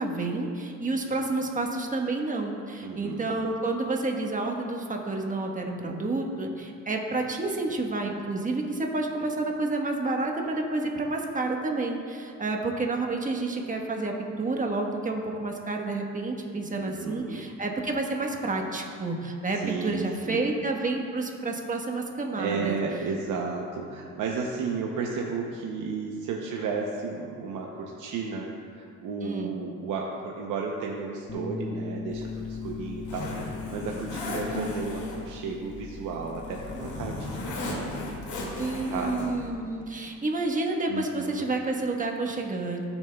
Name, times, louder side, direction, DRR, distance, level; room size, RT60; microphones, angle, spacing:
voice 1, 0.0-22.8 29.2-29.5 38.6-42.8, right 2 dB, 25° right, 1 dB, 1.3 m, -29 dB
voice 2, 2.8-3.3 16.8-17.5 19.5-20.5 22.4-28.5 28.8-38.1 38.9-39.3 40.9-41.5, right 4 dB, 90° right, 0 dB, 0.8 m, -33 dB
Bass guitar, 31.3-37.5, left 4 dB, 35° left, 0.9 m, -39 dB
Zipper (clothing), 32.1-39.5, left 1 dB, 85° left, 2.2 m, -36 dB
15.5 x 7.1 x 2.3 m, 2.4 s
cardioid pair, 90°, 30 cm